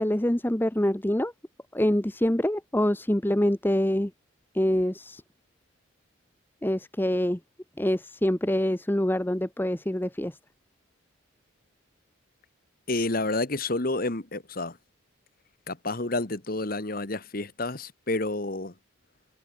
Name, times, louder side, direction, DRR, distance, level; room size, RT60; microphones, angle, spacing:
voice 1, 0.0-1.3 1.7-4.1 4.5-5.2 6.6-7.4 7.8-10.4, left 1 dB, 10° left, 0.8 m, -25 dB
voice 2, 12.9-14.8 15.7-18.7, left 2 dB, 45° left, 1.4 m, -29 dB
head